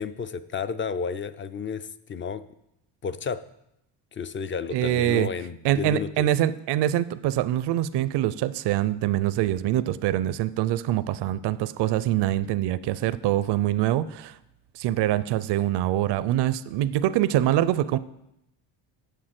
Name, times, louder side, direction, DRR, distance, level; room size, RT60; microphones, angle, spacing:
voice 1, 0.0-2.4 3.0-3.4 4.1-6.3, left 6 dB, 30° left, 13 dB, 0.3 m, -32 dB
voice 2, 4.7-5.3 5.6-14.4 14.7-18.0, right 13 dB, 60° right, 16 dB, 0.5 m, -24 dB
8.1 x 6.6 x 7.6 m, 0.83 s
cardioid pair, 120°, 48 cm